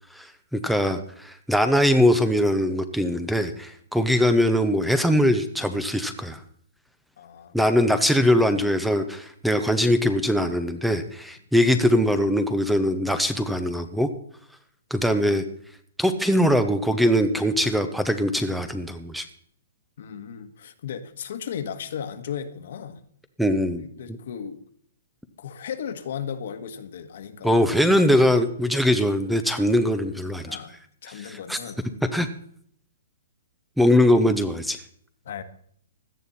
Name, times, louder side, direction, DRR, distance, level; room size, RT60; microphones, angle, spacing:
voice 1, 0.1-6.4 7.5-14.1 14.9-15.4 16.0-19.2 23.4-23.8 27.4-30.6 31.1-31.6 32.1-32.3 33.8-34.8, equal, ahead, 10 dB, 0.8 m, -21 dB
voice 2, 7.2-7.5 7.8-8.0 20.0-23.0 23.7-24.6 25.4-27.8 30.5-30.7 31.0-31.8 35.2-35.4, left 8 dB, 60° left, 8 dB, 1.5 m, -35 dB
16.5 x 12.0 x 4.2 m, 0.63 s
hypercardioid pair, 155°, 0 cm